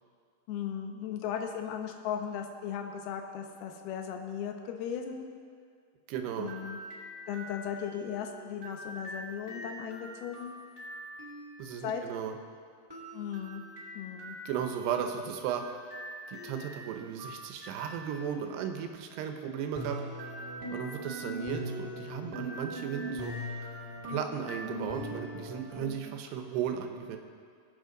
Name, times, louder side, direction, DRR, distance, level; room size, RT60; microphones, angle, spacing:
voice 1, 0.5-5.3 6.4-6.8 7.3-10.5 11.8-12.0 13.1-13.6 14.0-14.4, left 8 dB, 75° left, 4 dB, 2.7 m, -37 dB
voice 2, 6.1-6.5 11.6-12.4 14.5-15.8 16.3-20.0 20.7-23.3 24.1-27.2, right 8 dB, 80° right, 5 dB, 2.9 m, -35 dB
sound 1, 6.3-11.6 12.9-18.7 19.7-25.9, equal, 10° right, 1.3 m, -42 dB
19.0 x 8.3 x 3.9 m, 2.2 s
omnidirectional pair, 4.9 m